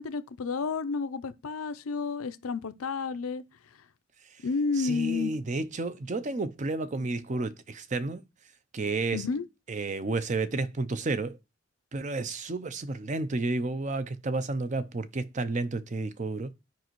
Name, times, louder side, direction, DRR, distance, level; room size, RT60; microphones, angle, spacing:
voice 1, 0.0-3.4 4.4-5.3 9.1-9.4, left 4 dB, 85° left, 0.5 m, -31 dB
voice 2, 4.8-8.2 8.7-9.2 9.7-11.4 11.9-16.5, right 3 dB, 35° right, 0.5 m, -31 dB
10.5 x 5.1 x 3.0 m
head